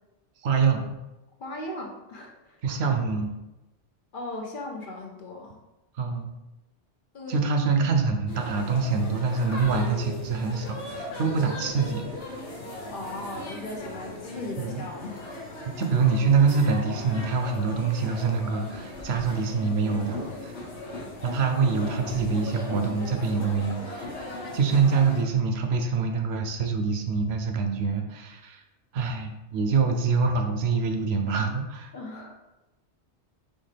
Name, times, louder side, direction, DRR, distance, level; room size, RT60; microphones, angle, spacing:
voice 1, 0.4-0.9 2.6-3.3 5.9-6.3 7.3-12.4 14.6-14.8 15.7-20.6 21.2-28.6 28.9-31.9, right 5 dB, 70° right, 5 dB, 0.8 m, -25 dB
voice 2, 1.4-2.6 4.1-5.6 7.1-7.4 12.9-15.4 31.9-32.3, left 1 dB, 55° left, 0 dB, 0.8 m, -38 dB
sound 1, 8.3-25.2, left 1 dB, 75° left, 1.3 m, -38 dB
4.4 x 3.4 x 3.3 m, 1.0 s
omnidirectional pair, 1.2 m